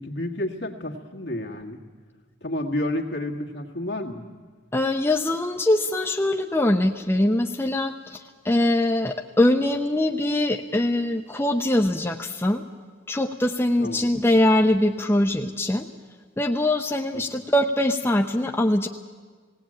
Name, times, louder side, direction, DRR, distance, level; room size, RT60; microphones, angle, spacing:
voice 1, 0.0-1.8 2.4-4.2 13.8-14.1 17.1-17.3, left 1 dB, 60° left, 1 dB, 1.9 m, -30 dB
voice 2, 4.7-12.6 13.1-15.9 16.4-18.9, left 1 dB, 10° left, 3 dB, 0.5 m, -22 dB
18.5 x 17.5 x 8.8 m, 1.6 s
head